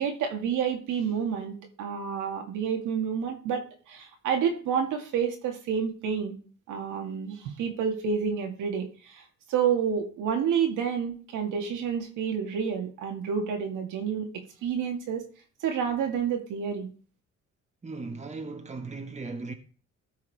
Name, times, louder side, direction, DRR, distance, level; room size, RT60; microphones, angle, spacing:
voice 1, 0.0-6.4 6.7-9.2 9.5-15.3 15.6-16.9, right 7 dB, 85° right, 1.9 m, -29 dB
voice 2, 17.8-19.5, right 3 dB, 25° right, 1.5 m, -37 dB
13.5 x 4.8 x 4.7 m
cardioid pair, 90°, 30 cm